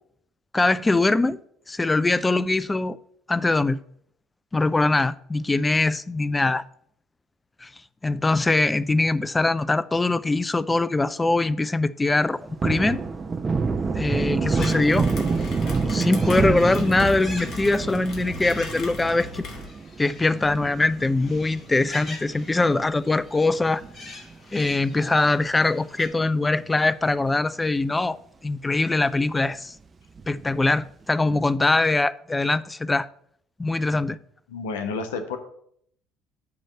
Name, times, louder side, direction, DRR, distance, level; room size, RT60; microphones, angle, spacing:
voice 1, 0.5-1.4 1.7-3.0 3.3-3.8 4.5-6.6 7.6-7.7 8.0-13.0 13.9-15.1 15.9-19.4 20.0-23.8 24.5-28.2 28.4-29.7 30.3-33.1 33.6-34.2, left 2 dB, 20° left, 0.4 m, -22 dB
Thunder, 12.2-22.9 23.3-23.4 23.8-25.3 25.5-25.7 26.0-26.9 27.3-27.4 27.7-27.8 30.2-30.7, right 4 dB, 30° right, 0.9 m, -28 dB
sound 1, 14.0-26.1, left 3 dB, 40° left, 2.0 m, -44 dB
Rain, 14.5-19.7, left 4 dB, 55° left, 1.6 m, -39 dB
voice 2, 34.5-35.4, left 4 dB, 80° left, 0.9 m, -31 dB
8.5 x 3.1 x 6.5 m
hypercardioid pair, 65°, 0 cm